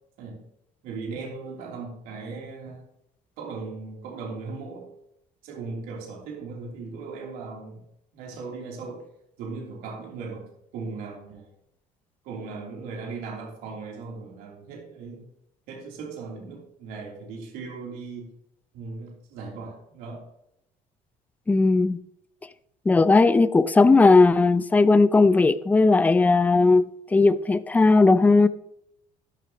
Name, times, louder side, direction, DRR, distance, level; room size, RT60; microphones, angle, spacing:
voice 1, 0.8-2.8 3.4-4.9 5.4-7.8 8.1-9.0 9.4-11.5 12.2-15.3 15.7-18.3 18.7-20.2, right 4 dB, 80° right, 3.3 m, -38 dB
voice 2, 21.5-22.0 22.9-26.8 27.1-28.5, left 3 dB, 10° left, 0.4 m, -17 dB
13.5 x 11.0 x 3.0 m
cardioid pair, 150°, 15 cm